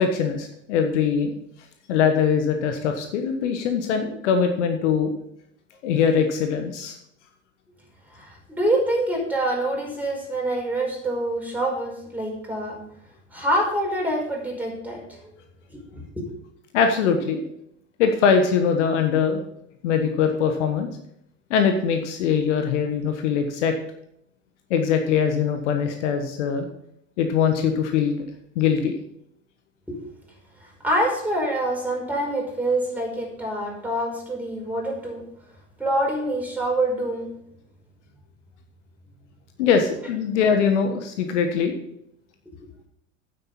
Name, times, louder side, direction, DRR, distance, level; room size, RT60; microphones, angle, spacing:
voice 1, 0.0-1.3 1.9-5.1 5.8-6.9 16.7-17.4 18.0-19.4 19.8-20.9 21.5-23.7 24.7-26.7 27.2-28.2 28.5-28.9 39.6-41.8, left 6 dB, 65° left, 6 dB, 1.4 m, -22 dB
voice 2, 8.1-12.8 13.3-15.3 15.7-16.3 29.9-30.0 30.8-35.2 35.8-37.3, right 1 dB, 5° right, -2 dB, 5.3 m, -26 dB
9.6 x 8.3 x 5.6 m, 0.73 s
figure-of-eight pair, 75°, 39 cm